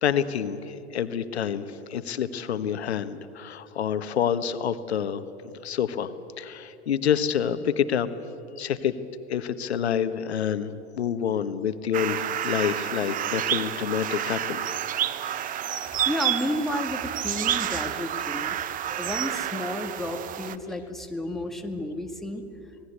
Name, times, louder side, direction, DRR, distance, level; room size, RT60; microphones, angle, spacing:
voice 1, 0.0-5.2 5.6-8.1 8.6-8.9 9.3-14.6, left 8 dB, 70° left, 11 dB, 1.4 m, -27 dB
sound 1, 11.9-20.6, right 11 dB, 25° right, 0.9 m, -29 dB
voice 2, 16.0-18.6 19.0-22.5, left 1 dB, ahead, 3 dB, 2.0 m, -32 dB
26.0 x 19.5 x 8.2 m, 2.8 s
figure-of-eight pair, 100°, 33 cm